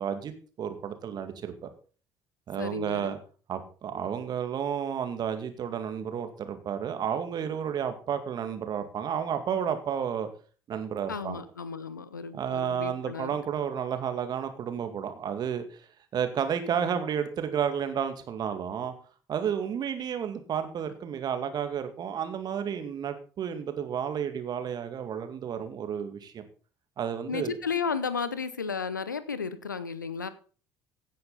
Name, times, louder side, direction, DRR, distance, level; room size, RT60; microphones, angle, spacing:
voice 1, 0.0-1.7 2.5-3.2 3.5-10.3 10.7-11.4 12.3-18.9 19.3-26.4 27.0-27.5, right 8 dB, 45° right, 2.1 m, -31 dB
voice 2, 2.6-3.2 11.1-13.3 27.3-30.3, left 5 dB, 85° left, 0.8 m, -33 dB
16.0 x 9.3 x 4.0 m
figure-of-eight pair, 55°, 10 cm